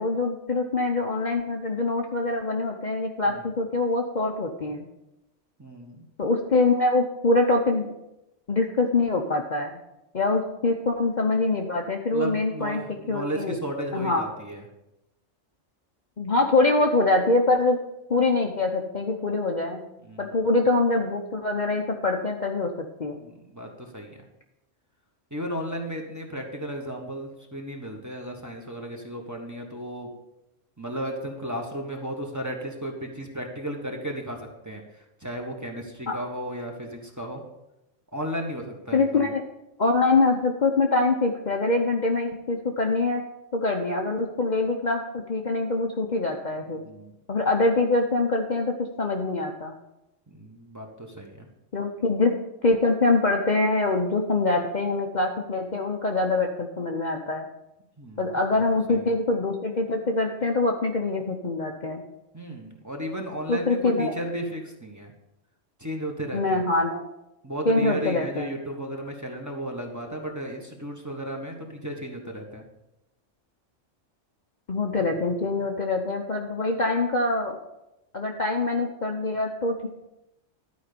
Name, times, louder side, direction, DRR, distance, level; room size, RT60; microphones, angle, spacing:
voice 1, 0.0-4.8 6.2-7.9 8.5-9.8 10.1-13.6 13.9-14.2 16.2-17.8 18.1-19.8 20.2-23.2 36.1-36.2 38.9-39.4 39.8-43.2 43.5-46.8 47.3-49.7 51.7-52.3 52.6-57.5 58.2-62.0 63.5-64.1 66.3-67.0 67.6-68.5 74.7-77.6 78.1-79.9, left 2 dB, 40° left, 1 dB, 0.9 m, -24 dB
voice 2, 5.6-6.0 12.1-14.6 20.0-20.3 23.2-24.2 25.3-30.1 30.8-34.8 35.2-37.4 38.1-39.3 46.8-47.1 50.3-51.5 58.0-59.2 62.3-65.1 65.8-66.6 67.4-72.6 75.0-75.1, equal, 15° right, 0 dB, 1.4 m, -34 dB
11.5 x 5.1 x 6.8 m, 0.90 s
omnidirectional pair, 1.3 m